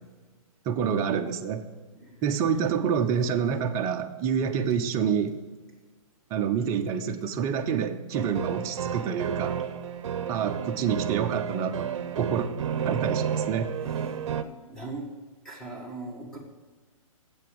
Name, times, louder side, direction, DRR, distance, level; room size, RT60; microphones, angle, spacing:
voice 1, 0.7-1.6 2.2-5.3 6.3-9.6 10.3-11.9 12.1-12.5 12.8-13.7, right 7 dB, 20° right, 4 dB, 0.5 m, -27 dB
voice 2, 1.9-2.7 13.8-14.1 14.7-15.1 15.4-16.4, right 2 dB, 5° left, -2 dB, 1.4 m, -41 dB
sound 1, 8.1-14.4, right 8 dB, 55° right, 0.7 m, -31 dB
7.8 x 6.8 x 6.8 m, 1.3 s
hypercardioid pair, 150°, 18 cm